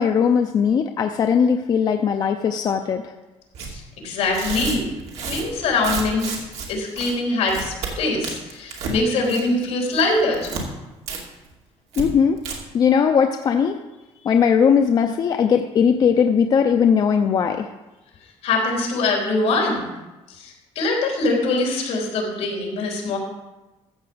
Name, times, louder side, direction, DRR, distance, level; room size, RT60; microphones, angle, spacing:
voice 1, 0.0-3.1 12.0-12.5 12.7-13.8 14.2-17.7, left 7 dB, 35° left, 6 dB, 0.5 m, -19 dB
Tearing, 3.5-3.7 4.2-6.7 7.0-7.1 7.5-7.9 8.2-9.0 9.2-9.6 9.9-10.6 11.1-11.2 11.5-11.6 11.9-12.0 12.4-12.5, right 5 dB, 70° right, 2.5 m, -31 dB
voice 2, 3.6-4.9 5.3-10.5 18.4-19.9 20.4-23.2, left 2 dB, 70° left, -1 dB, 3.7 m, -23 dB
14.0 x 5.0 x 7.8 m, 1.1 s
cardioid pair, 180°, 11 cm